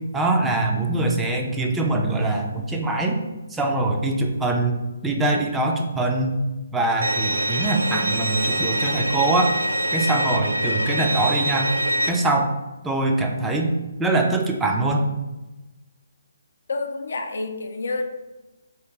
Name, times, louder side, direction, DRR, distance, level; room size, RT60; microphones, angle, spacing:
voice 1, 0.1-3.2 3.5-6.4 6.7-9.5 9.9-11.7 12.0-12.5 12.8-13.7 14.0-15.1, right 2 dB, 10° right, 1 dB, 0.3 m, -23 dB
Bowed string instrument, 7.0-12.1, right 1 dB, 85° right, 0.3 m, -24 dB
voice 2, 16.7-18.0, left 3 dB, 65° left, 5 dB, 0.4 m, -28 dB
2.9 x 2.5 x 3.5 m, 1.1 s
figure-of-eight pair, 140°, 0 cm